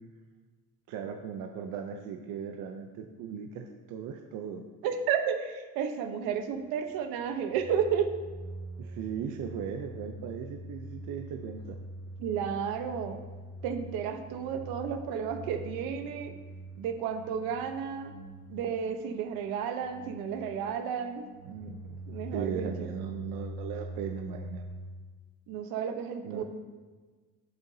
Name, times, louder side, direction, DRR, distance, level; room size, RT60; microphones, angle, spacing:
voice 1, 0.9-4.6 8.8-11.8 21.5-22.0 22.3-24.6 26.2-26.4, right 7 dB, 65° right, 4 dB, 0.6 m, -38 dB
voice 2, 4.8-8.1 12.2-13.2 13.6-16.3 16.8-18.1 18.5-21.2 22.1-22.9 25.5-26.4, right 7 dB, 80° right, 7 dB, 1.0 m, -32 dB
sound 1, 6.2-24.9, right 1 dB, 40° right, 1.5 m, -44 dB
10.5 x 6.8 x 2.8 m, 1.4 s
cardioid pair, 175°, 36 cm